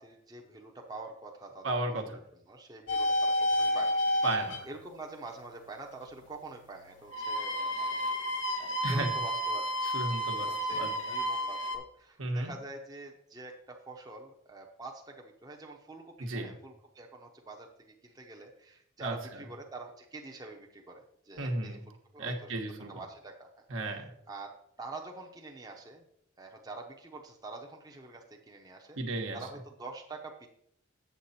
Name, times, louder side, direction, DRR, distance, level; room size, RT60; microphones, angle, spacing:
voice 1, 0.0-1.8 2.0-2.2 2.5-4.0 4.6-9.7 10.0-22.5 22.9-23.5 23.9-24.0 24.3-26.0 26.4-29.0 29.3-30.5, right 3 dB, 20° right, 1 dB, 0.8 m, -46 dB
voice 2, 1.6-2.1 4.2-4.7 8.8-9.1 9.8-11.1 12.2-12.5 16.2-16.5 19.0-19.1 21.4-21.8 22.2-22.9 23.7-24.1 29.0-29.4, right 2 dB, 75° right, 3 dB, 1.3 m, -34 dB
sound 1, 2.9-4.6 7.0-11.8, equal, 65° left, 1.2 m, -30 dB
8.1 x 7.1 x 4.2 m, 0.71 s
head